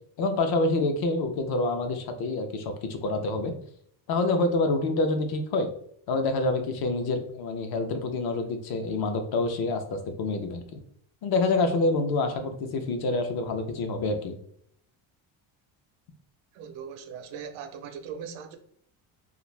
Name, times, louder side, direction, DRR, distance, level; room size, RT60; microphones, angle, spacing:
voice 1, 0.2-3.5 4.1-5.7 6.1-10.8 11.2-14.3, left 2 dB, 50° left, 0.6 m, -27 dB
voice 2, 16.5-18.6, right 7 dB, 80° right, 0.6 m, -39 dB
2.4 x 2.4 x 3.1 m
cardioid pair, 150°, 48 cm